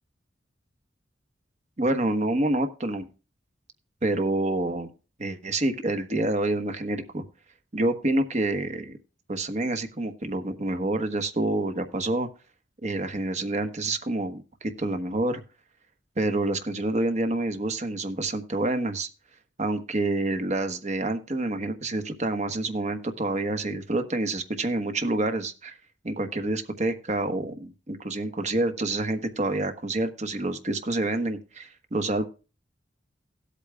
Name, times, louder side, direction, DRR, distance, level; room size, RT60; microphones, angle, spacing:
voice 1, 1.8-3.0 4.0-4.9 5.2-7.2 7.7-9.0 9.3-12.3 12.8-15.4 16.2-19.1 19.6-25.8 26.0-32.2, right 2 dB, 40° right, 8 dB, 1.2 m, -27 dB
17.0 x 8.4 x 2.3 m, 0.32 s
head